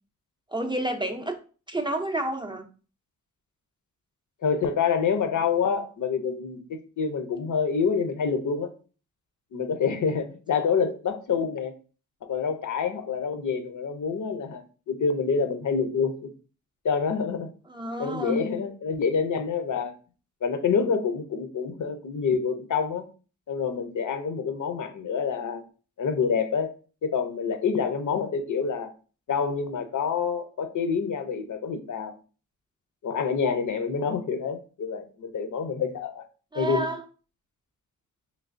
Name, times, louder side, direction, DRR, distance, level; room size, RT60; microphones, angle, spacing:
voice 1, 0.5-1.4 1.7-2.6 17.7-18.5 36.5-37.0, right 1 dB, 15° right, 4 dB, 0.4 m, -29 dB
voice 2, 4.4-8.7 9.5-11.7 12.2-16.3 16.8-17.5 18.0-19.9 20.4-23.1 23.5-25.6 26.0-26.7 27.0-28.9 29.3-32.1 33.0-36.2 36.5-36.9, left 6 dB, 65° left, 7 dB, 0.6 m, -27 dB
3.2 x 3.1 x 2.5 m, 0.36 s
cardioid pair, 80°, 32 cm